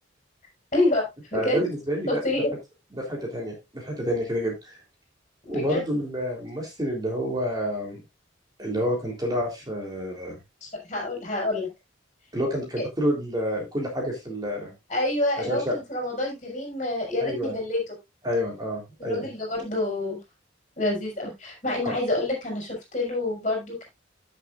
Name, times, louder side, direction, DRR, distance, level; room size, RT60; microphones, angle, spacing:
voice 1, 0.7-1.1 1.3-1.7 2.1-2.5 5.5-5.8 10.6-11.7 12.8-12.9 14.9-17.8 19.0-20.2 20.8-23.9, left 2 dB, 35° left, -1 dB, 5.1 m, -27 dB
voice 2, 1.3-2.2 2.9-4.7 5.5-8.0 8.6-10.4 12.3-14.7 15.4-15.8 17.2-17.5 18.2-19.3 21.8-21.9, equal, 20° right, -1 dB, 3.5 m, -28 dB
15.5 x 6.8 x 2.5 m, 0.22 s
head